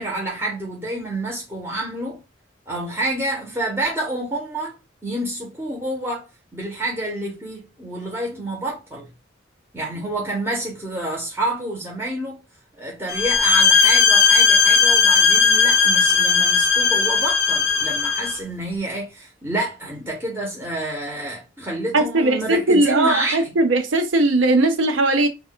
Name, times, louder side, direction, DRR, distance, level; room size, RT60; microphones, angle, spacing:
voice 1, 0.0-2.2 2.7-6.3 6.5-9.1 9.7-12.4 12.8-23.4, right 1 dB, 10° right, 0.7 m, -28 dB
sound 1, 13.1-18.4, left 5 dB, 55° left, 0.4 m, -17 dB
voice 2, 21.9-25.3, right 2 dB, 75° right, 0.6 m, -18 dB
2.1 x 2.1 x 3.7 m
head